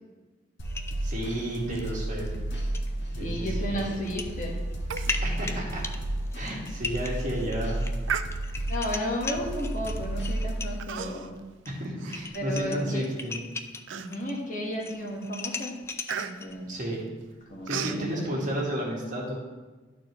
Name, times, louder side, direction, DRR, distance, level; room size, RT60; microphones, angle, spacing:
sound 1, 0.6-10.8, right 1 dB, 65° left, 1.3 m, -32 dB
sound 2, 0.6-1.9 2.2-2.4 2.7-2.9 3.9-4.3 4.7-10.9 11.7-11.8 12.0-14.4 14.7-16.6, left 4 dB, 15° left, 0.3 m, -38 dB
voice 1, 1.0-2.3 3.1-3.9 5.2-5.8 6.3-7.8 11.7-13.4 16.7-17.0 17.7-19.4, equal, 45° right, -4 dB, 1.9 m, -32 dB
voice 2, 2.8-4.6 8.7-11.3 12.3-13.0 13.9-15.7 16.2-16.7 17.5-18.4, equal, 45° left, -2 dB, 1.4 m, -33 dB
Human voice, 4.9-5.2 5.5-5.6 6.2-6.3 6.8-7.1 8.0-8.8 9.5-9.8 10.8-11.4 11.8-12.8 13.3-13.4 13.9-14.4 14.9-15.2 15.4-18.0, right 7 dB, 80° right, 0.4 m, -36 dB
12.5 x 4.5 x 3.1 m, 1.3 s
head